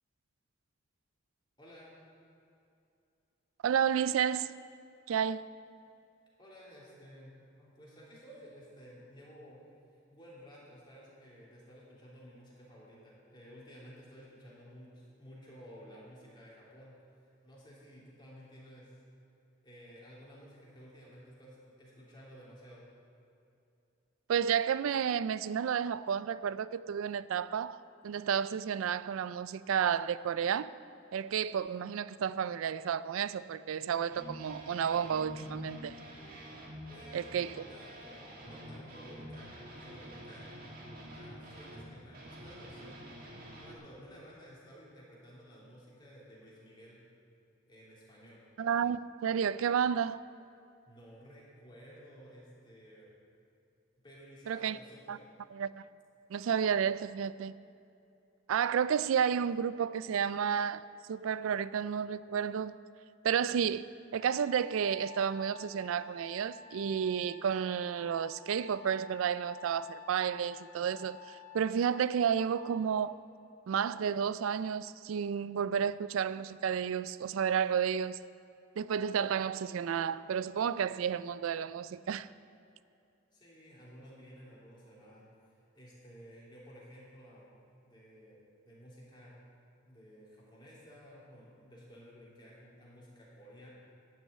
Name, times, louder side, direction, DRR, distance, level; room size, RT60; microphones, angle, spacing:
voice 1, 1.6-2.0 6.4-9.6 10.1-16.9 17.4-19.0 19.6-22.8 36.9-39.5 39.8-40.5 41.1-43.1 43.5-47.0 47.7-48.4 50.9-53.1 54.0-55.2 83.3-87.5 87.8-88.4 88.6-89.3 89.8-93.7, equal, 25° left, 3.1 m, -54 dB
voice 2, 3.6-4.5 5.1-5.5 24.3-30.7 31.1-36.0 37.1-37.5 48.6-50.2 54.5-54.8 55.1-55.2 55.5-55.8 56.3-57.5 58.5-60.8 61.1-62.8 63.2-73.2 73.7-78.2 78.8-82.3, right 8 dB, 85° right, 0.3 m, -31 dB
sound 1, 34.1-43.7, equal, 45° right, 1.9 m, -47 dB
Trumpet, 64.2-72.7, left 8 dB, 70° left, 2.2 m, -51 dB
12.0 x 6.2 x 8.8 m
head